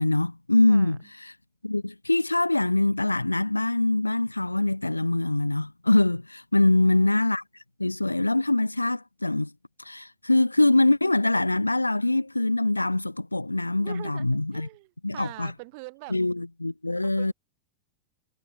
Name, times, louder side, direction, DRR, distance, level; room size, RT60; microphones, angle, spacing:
voice 1, 0.0-1.3 1.6-7.4 7.8-9.5 9.8-14.7 15.0-15.5 16.1-17.3, left 2 dB, 85° left, 3.6 m, -23 dB
voice 2, 6.6-7.1 13.8-16.2 17.0-17.3, right 28 dB, 45° right, 7.5 m, -44 dB
figure-of-eight pair, 90°, 0 cm